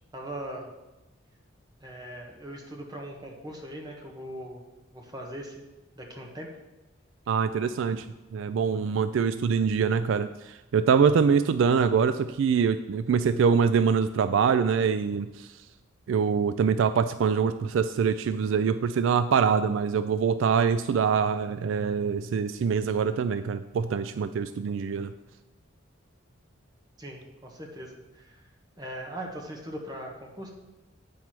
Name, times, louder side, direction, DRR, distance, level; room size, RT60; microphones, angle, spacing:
voice 1, 0.1-0.7 1.8-4.6 4.9-5.6 5.9-6.5 27.0-28.4 28.8-30.5, right 1 dB, 20° right, 0 dB, 1.4 m, -40 dB
voice 2, 7.3-8.1 8.3-15.5 16.1-25.1, right 6 dB, 70° right, 12 dB, 0.3 m, -24 dB
8.6 x 4.7 x 5.9 m, 1.0 s
head